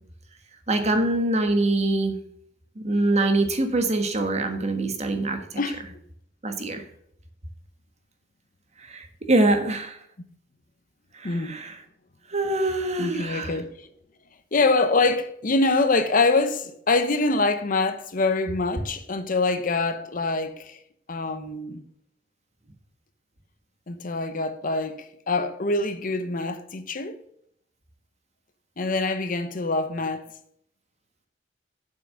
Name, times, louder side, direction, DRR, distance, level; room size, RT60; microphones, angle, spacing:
voice 1, 0.7-2.2 2.8-5.6 6.4-6.8 8.8-10.0 11.1-11.8 12.3-13.6, right 2 dB, 35° right, 1.3 m, -24 dB
voice 2, 11.2-11.6 13.0-13.9 14.5-20.8 21.1-21.8 23.9-27.2 28.8-30.3, left 3 dB, 45° left, 0.8 m, -25 dB
7.7 x 5.9 x 6.4 m
head